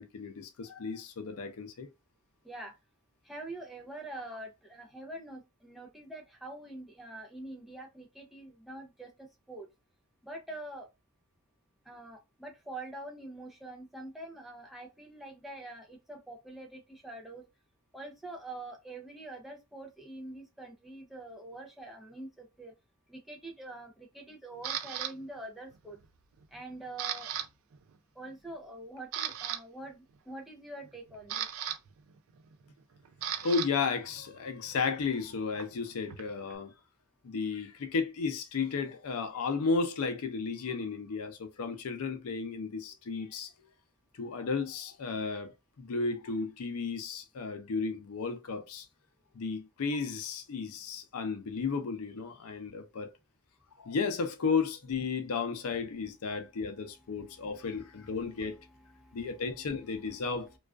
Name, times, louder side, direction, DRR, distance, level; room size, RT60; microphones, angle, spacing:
voice 1, 0.0-1.9 33.3-36.7 37.2-43.5 44.2-48.9 49.3-53.1 53.8-58.6 59.1-60.5, left 4 dB, 80° left, 0.5 m, -33 dB
voice 2, 3.3-9.7 10.2-10.9 11.9-17.4 17.9-22.7 23.1-26.0 26.5-27.3 28.2-31.5 57.4-57.7 58.9-59.4, right 2 dB, ahead, 0.4 m, -45 dB
Camera, 24.6-25.1 25.7-26.0 26.4-27.5 27.7-27.9 28.5-28.6 29.0-29.6 30.8-33.7 34.0-36.6, right 10 dB, 65° right, 0.3 m, -37 dB
2.3 x 2.3 x 2.3 m
head